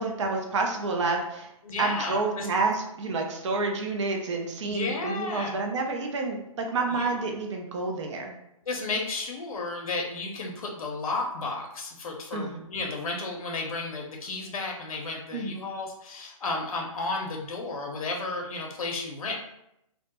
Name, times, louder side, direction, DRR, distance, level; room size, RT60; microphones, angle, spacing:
voice 1, 0.0-1.5 1.8-8.4 12.3-12.6 15.3-15.6, right 3 dB, 55° right, 2 dB, 0.4 m, -29 dB
voice 2, 1.6-2.5 4.6-5.6 6.9-7.2 8.7-19.3, left 3 dB, 80° left, 0 dB, 0.5 m, -33 dB
2.1 x 2.1 x 2.8 m, 0.82 s
hypercardioid pair, 170°, 18 cm